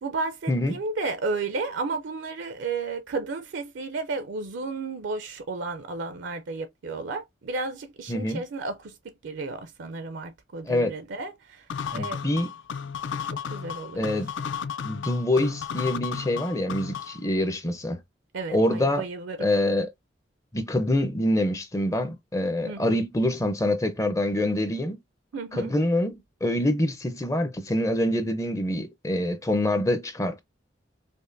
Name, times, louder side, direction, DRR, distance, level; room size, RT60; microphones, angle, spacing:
voice 1, 0.0-9.0 9.2-11.7 11.9-12.2 13.2-14.1 18.3-19.5 22.7-23.0 25.3-25.7, right 3 dB, 75° right, 0.5 m, -33 dB
voice 2, 8.1-8.4 10.7-10.9 11.9-12.5 13.9-14.3 14.8-18.0 18.5-19.0 19.4-19.9 20.5-25.0 25.5-30.4, left 1 dB, 15° left, 0.5 m, -25 dB
sound 1, 11.7-17.3, left 7 dB, 75° left, 0.4 m, -33 dB
5.2 x 2.1 x 2.5 m
head